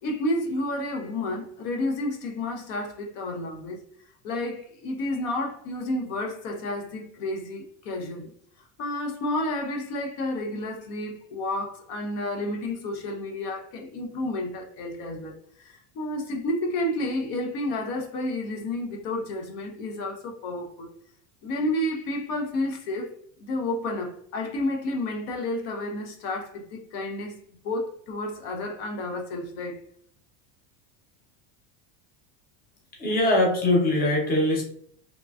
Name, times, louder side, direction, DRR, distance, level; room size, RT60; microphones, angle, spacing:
voice 1, 0.0-3.8 4.2-8.3 8.8-20.9 21.4-23.1 23.4-27.4 27.6-29.8, left 1 dB, 70° left, 0.8 m, -31 dB
voice 2, 33.0-34.6, left 1 dB, 20° left, 0.7 m, -22 dB
3.0 x 2.4 x 2.3 m
cardioid pair, 150°, 47 cm